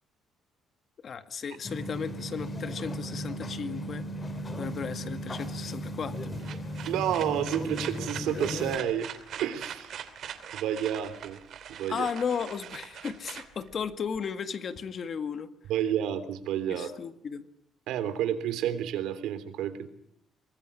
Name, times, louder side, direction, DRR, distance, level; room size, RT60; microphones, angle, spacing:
voice 1, 1.0-4.0 4.6-6.3 11.9-15.5 16.7-17.5, left 6 dB, 35° left, 11 dB, 1.7 m, -35 dB
sound 1, 1.6-8.8, equal, 20° left, 2.4 m, -36 dB
sound 2, 6.2-14.2, right 9 dB, 50° right, 2.9 m, -42 dB
voice 2, 6.9-9.1 9.4-9.9 10.5-11.4 11.7-12.1 15.7-16.9 17.9-19.9, right 10 dB, 90° right, 12 dB, 3.3 m, -30 dB
24.5 x 20.5 x 9.8 m, 0.71 s
cardioid pair, 165°, 0 cm